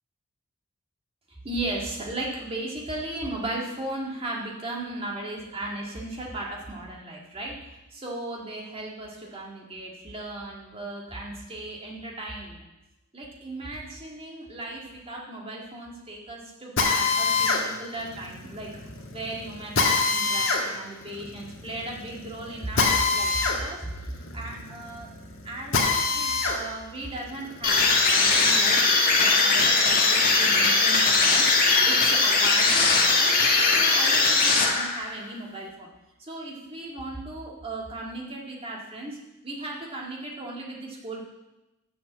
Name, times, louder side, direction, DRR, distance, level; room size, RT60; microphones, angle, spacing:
voice 1, 1.4-7.6 7.9-12.6 13.1-18.7 19.1-25.1 25.4-33.3 33.7-35.9 36.2-39.2 39.4-41.2, right 2 dB, 25° right, -2 dB, 1.9 m, -36 dB
Drill, 16.8-26.6 27.0-28.7, left 4 dB, 60° left, 1.6 m, -26 dB
sound 1, 27.6-35.1, left 3 dB, 45° left, 1.5 m, -20 dB
7.1 x 7.0 x 7.3 m, 0.98 s
head